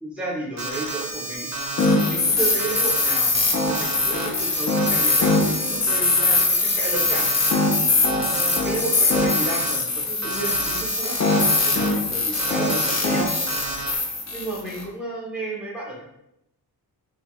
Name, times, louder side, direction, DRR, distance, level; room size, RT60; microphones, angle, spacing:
voice 1, 0.0-1.5 2.0-7.3 8.2-11.1 11.6-13.3 14.3-16.0, right 2 dB, 5° right, -4 dB, 0.8 m, -32 dB
Alarm, 0.6-2.1 2.4-9.8 10.2-11.9 12.3-14.0, right 2 dB, 45° right, 0.5 m, -31 dB
sound 1, 1.8-14.8, left 3 dB, 40° left, 0.5 m, -22 dB
2.8 x 2.4 x 2.9 m, 0.81 s
wide cardioid pair, 155°, 42 cm